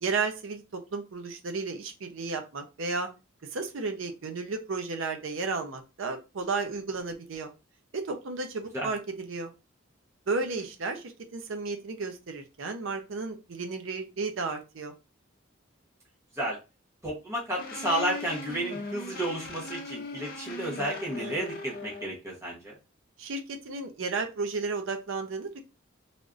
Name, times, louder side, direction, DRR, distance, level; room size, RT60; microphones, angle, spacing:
voice 1, 0.0-3.1 3.5-7.5 7.9-9.5 10.3-14.9 23.2-25.6, right 4 dB, 75° right, 6 dB, 0.6 m, -33 dB
voice 2, 17.0-22.7, right 1 dB, 15° right, -4 dB, 0.9 m, -32 dB
sound 1, 17.6-22.1, left 2 dB, 50° left, 0.6 m, -39 dB
3.4 x 2.5 x 2.4 m, 0.27 s
head